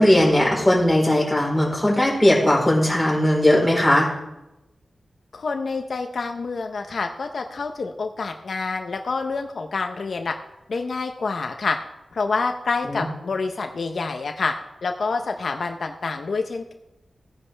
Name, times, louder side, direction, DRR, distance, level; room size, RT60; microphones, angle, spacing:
voice 1, 0.0-4.1 12.9-13.1, left 1 dB, 5° left, -3 dB, 4.0 m, -18 dB
voice 2, 5.3-10.3 10.7-11.8 12.1-14.5 14.8-16.7, left 4 dB, 65° left, 4 dB, 0.7 m, -27 dB
16.0 x 9.9 x 3.4 m, 0.93 s
wide cardioid pair, 120°, 0 cm